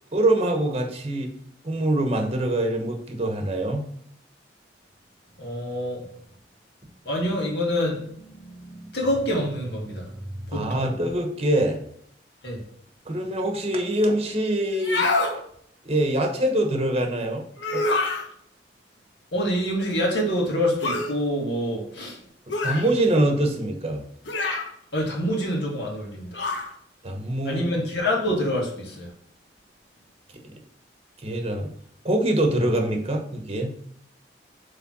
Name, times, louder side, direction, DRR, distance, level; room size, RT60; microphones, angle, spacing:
voice 1, 0.1-1.3 1.6-3.8 10.5-11.8 13.1-15.1 15.8-17.4 17.7-17.9 22.5-24.0 27.0-27.6 30.4-30.5 31.2-31.7 32.0-33.7, right 1 dB, 35° right, 3 dB, 1.0 m, -24 dB
voice 2, 5.4-6.1 7.1-10.8 12.4-12.6 19.3-22.2 24.9-26.4 27.4-29.1, equal, 70° left, -2 dB, 2.3 m, -26 dB
sound 1, 14.7-15.4 17.6-18.3 20.8-21.1 22.5-22.9 24.3-24.7 26.3-26.7, left 2 dB, 90° left, 1.2 m, -25 dB
7.5 x 3.4 x 6.0 m, 0.67 s
head